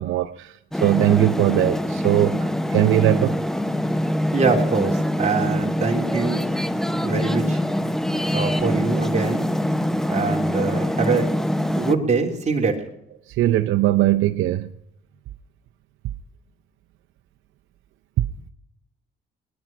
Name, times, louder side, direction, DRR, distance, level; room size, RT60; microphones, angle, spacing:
voice 1, 0.0-3.4 13.3-14.7 18.2-18.3, right 14 dB, 80° right, 0.7 m, -20 dB
sound 1, 0.7-12.0, equal, ahead, 0.8 m, -24 dB
voice 2, 4.3-6.4 6.9-7.6 8.3-9.4 10.1-11.3 11.7-12.8, right 4 dB, 35° right, 3.3 m, -23 dB
20.5 x 10.5 x 6.0 m
cardioid pair, 90°, 20 cm